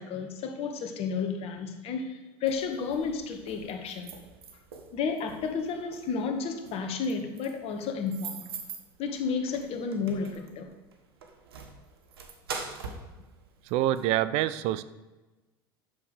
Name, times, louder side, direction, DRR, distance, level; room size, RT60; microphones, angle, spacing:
voice 1, 0.0-4.1 4.9-8.4 9.0-10.7, left 5 dB, 55° left, 5 dB, 1.7 m, -32 dB
sound 1, 2.5-14.1, right 5 dB, 85° right, 1.3 m, -44 dB
voice 2, 13.7-14.8, right 13 dB, 60° right, 16 dB, 0.5 m, -26 dB
10.5 x 7.1 x 5.1 m, 1.1 s
hypercardioid pair, 75°, 12 cm